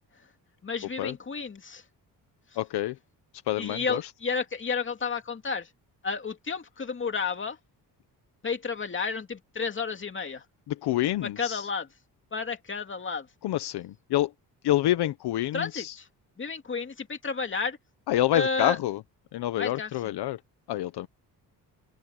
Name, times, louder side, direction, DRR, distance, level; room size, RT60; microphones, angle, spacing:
voice 1, 0.6-1.8 3.6-5.7 6.0-7.6 8.4-10.4 11.2-11.9 12.3-13.3 15.5-16.1 16.4-17.8 18.3-18.8 19.6-20.1, left 5 dB, 30° left, 2.6 m, -31 dB
voice 2, 2.6-3.0 3.5-4.0 10.7-11.7 13.4-14.3 14.6-16.0 18.1-19.0 19.3-20.4 20.7-21.1, left 14 dB, 85° left, 0.9 m, -27 dB
open air
cardioid pair, 140°, 39 cm